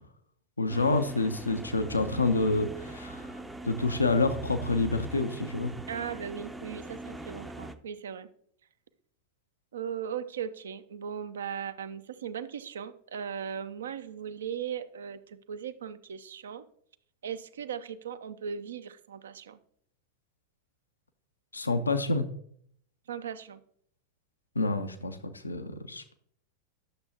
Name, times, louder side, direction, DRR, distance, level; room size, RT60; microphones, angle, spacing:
voice 1, 0.6-3.3 3.6-5.8 21.5-22.3 24.5-26.1, left 3 dB, 80° left, 9 dB, 0.7 m, -28 dB
sound 1, 0.7-7.8, right 2 dB, 5° right, 0.6 m, -41 dB
voice 2, 5.9-8.3 9.7-16.6 17.2-19.6 23.1-23.6, right 8 dB, 65° right, 12 dB, 0.6 m, -38 dB
11.5 x 7.0 x 2.9 m, 0.64 s
figure-of-eight pair, 90°, 0 cm